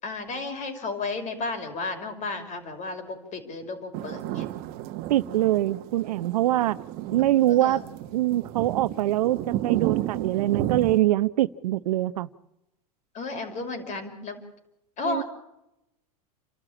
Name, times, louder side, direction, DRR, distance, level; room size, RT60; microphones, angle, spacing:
voice 1, 0.0-4.5 7.5-7.8 13.1-14.4 15.0-15.2, left 3 dB, 40° left, 7 dB, 5.4 m, -33 dB
sound 1, 3.9-11.0, right 14 dB, 50° right, 1.3 m, -33 dB
voice 2, 5.1-6.8 7.1-7.8 8.1-12.3 15.0-15.2, right 15 dB, 75° right, 16 dB, 0.8 m, -23 dB
29.5 x 12.5 x 8.7 m, 0.89 s
hypercardioid pair, 105°, 20 cm